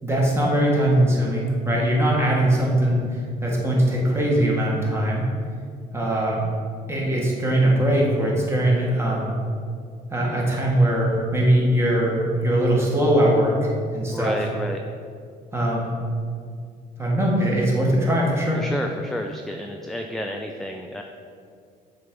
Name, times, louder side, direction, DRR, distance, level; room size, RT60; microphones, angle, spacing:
voice 1, 0.0-5.3 5.9-6.4 6.9-9.3 10.1-14.3 15.5-16.0 17.0-18.6, right 1 dB, 15° right, -3 dB, 1.5 m, -21 dB
voice 2, 14.1-14.8 18.5-21.0, equal, ahead, 3 dB, 0.3 m, -30 dB
6.5 x 3.5 x 5.2 m, 2.2 s
cardioid pair, 110°, 17 cm